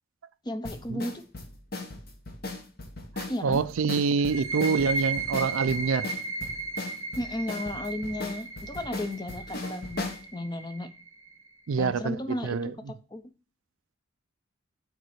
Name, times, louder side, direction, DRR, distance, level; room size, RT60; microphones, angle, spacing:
voice 1, 0.4-1.2 3.3-3.6 7.2-10.9 11.8-12.7 13.1-13.2, left 1 dB, 20° left, 0.6 m, -34 dB
sound 1, 0.6-10.2, left 2 dB, 45° left, 1.2 m, -38 dB
voice 2, 3.2-6.1 11.7-12.7, right 5 dB, 80° right, 0.5 m, -26 dB
sound 2, 4.2-11.6, right 4 dB, 15° right, 1.0 m, -35 dB
6.7 x 4.2 x 6.3 m
head